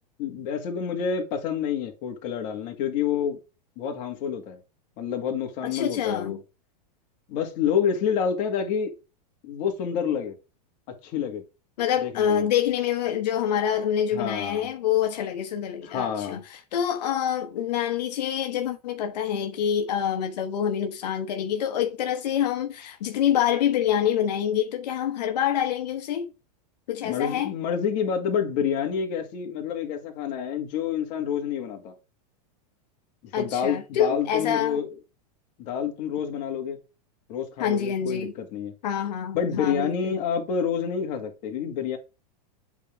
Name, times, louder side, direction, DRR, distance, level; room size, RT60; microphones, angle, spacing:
voice 1, 0.2-3.4 3.8-4.6 5.0-6.4 7.3-8.9 9.4-10.4 11.0-11.4 12.0-12.5 14.1-14.7 15.8-16.4 27.0-31.9 33.4-34.9 35.6-36.8 37.3-38.7 39.3-42.0, left 7 dB, 40° left, 1.9 m, -28 dB
voice 2, 5.6-6.4 11.8-26.3 26.9-27.5 33.3-34.8 37.6-38.3 38.8-40.2, left 9 dB, 75° left, 1.0 m, -26 dB
8.2 x 3.8 x 3.4 m
supercardioid pair, 155°, 21 cm